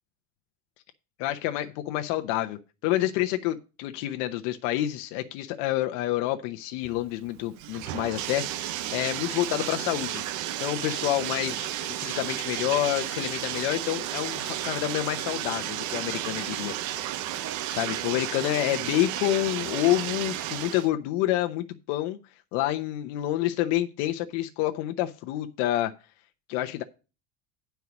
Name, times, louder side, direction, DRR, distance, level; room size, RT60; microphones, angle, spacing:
voice 1, 1.2-10.2 10.6-11.7 12.0-17.1 17.7-22.2 22.5-25.9 26.5-26.8, left 14 dB, 75° left, 6 dB, 0.9 m, -28 dB
Bathtub (filling or washing), 6.8-20.9, right 13 dB, 50° right, 0.8 m, -33 dB
9.4 x 4.6 x 7.0 m, 0.32 s
cardioid pair, 145°, 38 cm